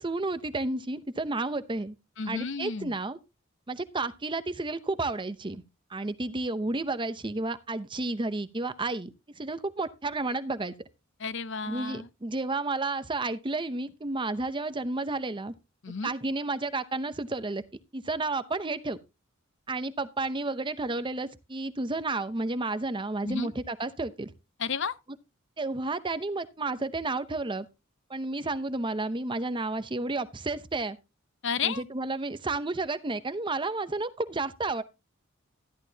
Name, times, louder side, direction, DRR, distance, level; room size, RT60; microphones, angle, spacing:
voice 1, 0.0-1.9 2.3-3.2 3.7-5.6 5.9-10.7 11.7-15.5 16.0-17.6 17.9-19.0 19.7-24.3 25.6-27.7 28.1-31.0 31.6-34.8, right 2 dB, 25° right, 0.7 m, -31 dB
voice 2, 2.2-3.0 11.2-12.1 15.8-16.1 23.2-23.5 24.6-24.9 31.4-31.8, left 5 dB, 60° left, 0.7 m, -32 dB
13.0 x 11.0 x 2.8 m
head